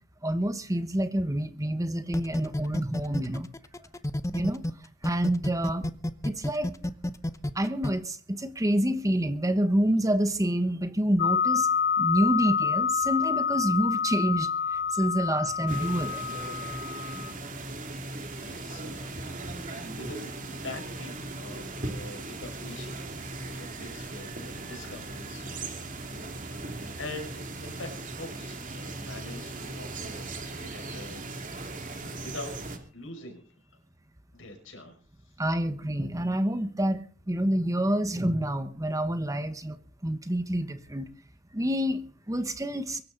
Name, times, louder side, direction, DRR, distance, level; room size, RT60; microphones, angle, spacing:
voice 1, 0.2-3.5 4.3-4.6 5.0-5.8 6.2-6.7 7.5-11.7 12.0-14.5 14.9-16.2 35.4-37.0 37.3-39.8 40.0-41.1 41.5-43.0, right 1 dB, 15° right, 10 dB, 1.2 m, -27 dB
sound 1, 2.1-4.7 5.0-7.9, left 1 dB, 15° left, 0.8 m, -30 dB
sound 2, 11.2-17.3, left 7 dB, 60° left, 0.8 m, -28 dB
sound 3, 15.7-32.8, right 2 dB, 45° right, 2.7 m, -38 dB
voice 2, 16.6-17.4 18.3-25.9 26.5-33.4 34.3-35.0, left 2 dB, 80° left, 4 dB, 6.0 m, -44 dB
23.5 x 12.5 x 4.0 m, 0.41 s
head